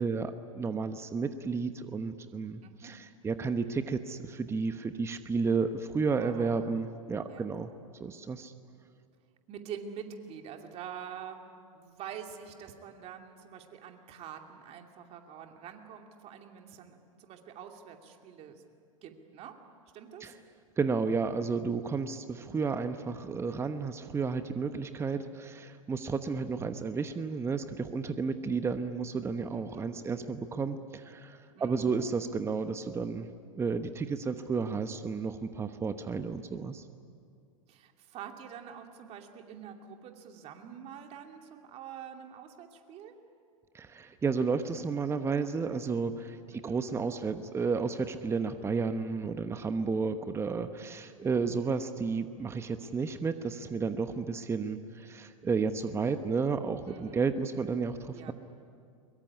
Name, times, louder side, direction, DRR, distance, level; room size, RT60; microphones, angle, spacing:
voice 1, 0.0-7.7 8.0-8.5 20.2-20.3 20.8-33.3 33.5-36.8 43.7-58.3, right 4 dB, 15° right, 10 dB, 1.1 m, -32 dB
voice 2, 2.6-3.0 6.2-6.8 7.3-7.6 9.5-18.6 19.0-19.6 19.9-20.3 29.5-29.9 31.5-32.0 37.7-43.2 46.5-46.8 56.9-57.6 58.1-58.3, right 8 dB, 35° right, 4 dB, 2.7 m, -46 dB
22.5 x 22.5 x 9.8 m, 2.3 s
hypercardioid pair, 100°, 17 cm